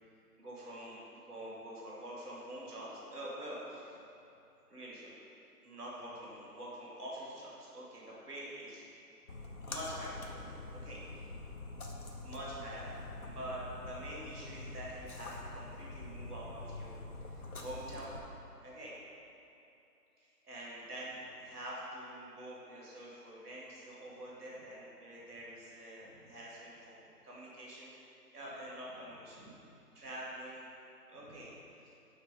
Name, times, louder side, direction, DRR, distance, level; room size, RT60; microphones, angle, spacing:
voice 1, 0.4-4.0 4.7-5.1 5.6-8.8 9.6-11.3 12.2-12.9 13.2-18.2 18.6-18.9 20.2-27.9 28.3-29.5 29.9-30.6 31.1-31.5 31.8-31.9, right 1 dB, 10° right, -6 dB, 1.6 m, -46 dB
Splash splatter, 9.3-18.2, left 2 dB, 60° left, 1.0 m, -45 dB
10.0 x 3.3 x 5.2 m, 2.8 s
figure-of-eight pair, 170°, 48 cm